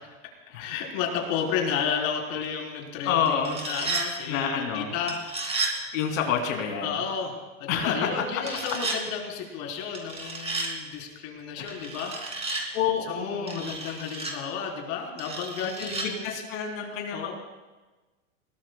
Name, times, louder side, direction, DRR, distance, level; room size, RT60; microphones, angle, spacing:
voice 1, 0.6-5.2 6.8-12.1 13.1-16.4 17.1-17.3, left 7 dB, 50° left, 0 dB, 4.3 m, -32 dB
voice 2, 3.0-3.6 4.3-4.9 5.9-7.0 7.7-8.2 11.6-11.9 12.7-13.7 15.6-17.3, left 7 dB, 65° left, 2 dB, 3.1 m, -28 dB
sound 1, 3.3-4.1 5.1-5.7 8.4-9.0 9.9-10.7 11.7-12.6 13.5-14.3 15.2-16.1, right 3 dB, 15° right, 2.9 m, -32 dB
21.5 x 17.5 x 2.3 m, 1.2 s
hypercardioid pair, 120°, 42 cm